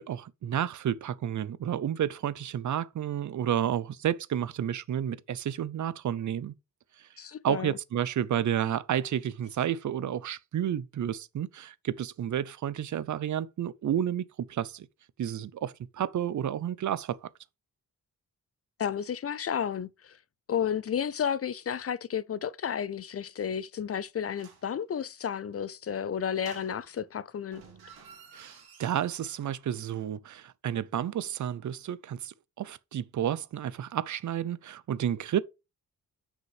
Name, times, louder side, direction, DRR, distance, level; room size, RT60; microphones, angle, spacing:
voice 1, 0.0-6.5 7.0-7.1 7.4-14.9 15.2-17.3 28.3-35.4, right 10 dB, 55° right, 0.6 m, -31 dB
voice 2, 7.2-7.7 18.8-20.2 20.5-27.6, left 8 dB, 40° left, 0.4 m, -32 dB
sound 1, 24.3-24.7 26.3-27.1 27.5-29.7 30.0-30.1, right 6 dB, 90° right, 2.4 m, -53 dB
6.4 x 5.2 x 4.8 m
wide cardioid pair, 160°, 36 cm